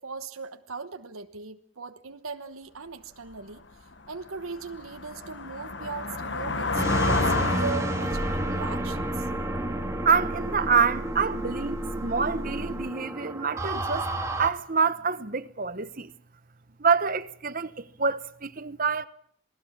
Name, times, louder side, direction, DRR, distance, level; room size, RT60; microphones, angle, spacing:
voice 1, 0.0-3.6 4.1-9.3, right 4 dB, 85° right, 1.2 m, -38 dB
sound 1, 3.3-3.4 3.9-10.5, left 3 dB, 55° left, 1.2 m, -31 dB
sound 2, 6.7-14.5, right 1 dB, 15° right, 1.7 m, -30 dB
voice 2, 10.0-14.1 14.4-16.1 16.8-19.1, right 5 dB, 40° right, 1.1 m, -26 dB
27.5 x 19.0 x 7.4 m
head